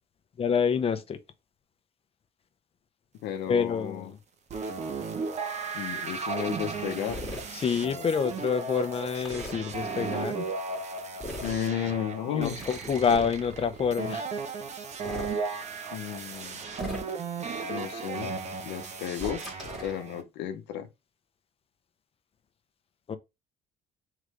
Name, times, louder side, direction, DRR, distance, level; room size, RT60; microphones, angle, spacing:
voice 1, 0.4-1.2 3.5-4.2 7.5-10.5 12.3-14.3 23.1-23.2, left 6 dB, 35° left, 0.7 m, -27 dB
voice 2, 3.2-4.1 5.7-7.2 7.8-8.1 11.4-12.6 15.9-16.6 17.7-20.9, left 9 dB, 90° left, 0.7 m, -33 dB
sound 1, 4.5-20.2, right 4 dB, 40° right, 0.8 m, -35 dB
sound 2, 7.1-7.4 9.2-9.6 11.2-11.6 12.6-13.4 14.9-15.3 16.7-17.3 19.1-20.0, left 1 dB, ahead, 1.9 m, -38 dB
3.8 x 3.2 x 3.3 m
cardioid pair, 110°, 17 cm